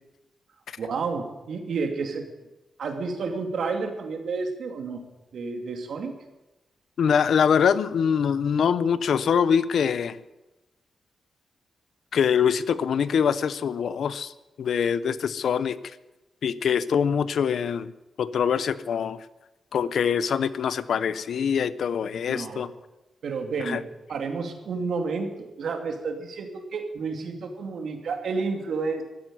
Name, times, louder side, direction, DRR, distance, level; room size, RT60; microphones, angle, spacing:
voice 1, 0.8-2.3 2.8-5.0 5.3-6.1 22.3-22.7 23.2-29.0, right 4 dB, 75° right, 5 dB, 2.5 m, -30 dB
voice 2, 7.0-10.2 12.1-14.3 14.6-15.8 16.4-17.9 18.2-19.2 19.7-22.7 23.7-23.8, left 7 dB, 75° left, 16 dB, 0.7 m, -24 dB
14.0 x 9.4 x 9.8 m, 1.0 s
wide cardioid pair, 110°, 0 cm